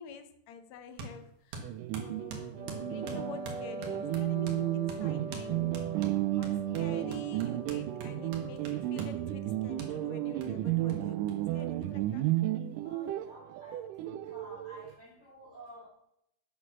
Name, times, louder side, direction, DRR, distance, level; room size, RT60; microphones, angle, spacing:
voice 1, 0.0-5.7 6.4-12.3, left 5 dB, 70° left, 10 dB, 1.9 m, -48 dB
sound 1, 1.0-1.2 1.5-4.6 4.9-5.0 5.3-5.5 5.7-9.2 9.8-9.9 10.4-10.5 10.9-11.0 11.3-11.4 11.6-12.3, right 3 dB, 65° right, 2.7 m, -44 dB
sound 2, 1.6-14.9, right 15 dB, 85° right, 2.1 m, -33 dB
Wind instrument woodwind instrument, 2.5-10.6, right 2 dB, 45° right, 2.4 m, -43 dB
voice 2, 12.8-15.9, equal, 20° left, -5 dB, 2.8 m, -51 dB
8.4 x 7.8 x 5.9 m, 0.77 s
omnidirectional pair, 3.7 m